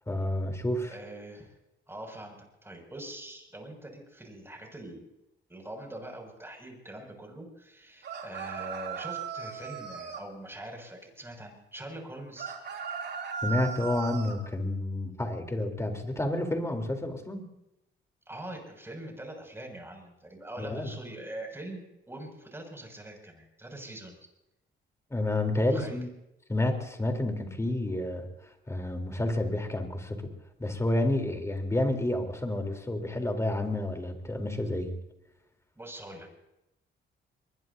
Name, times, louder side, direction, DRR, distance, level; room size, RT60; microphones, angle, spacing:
voice 1, 0.1-0.9 13.4-17.5 20.6-20.9 25.1-26.1 26.5-28.3 28.7-30.3 30.6-34.9, left 1 dB, 15° left, 4 dB, 3.7 m, -30 dB
voice 2, 0.9-1.6 1.9-2.4 2.6-5.1 5.5-12.5 18.3-24.2 25.7-26.0 35.8-36.4, right 1 dB, 10° right, 2 dB, 6.6 m, -43 dB
sound 1, 8.0-10.3 12.4-14.4, right 7 dB, 60° right, 3.1 m, -37 dB
23.0 x 21.5 x 2.8 m, 0.89 s
cardioid pair, 90°, 20 cm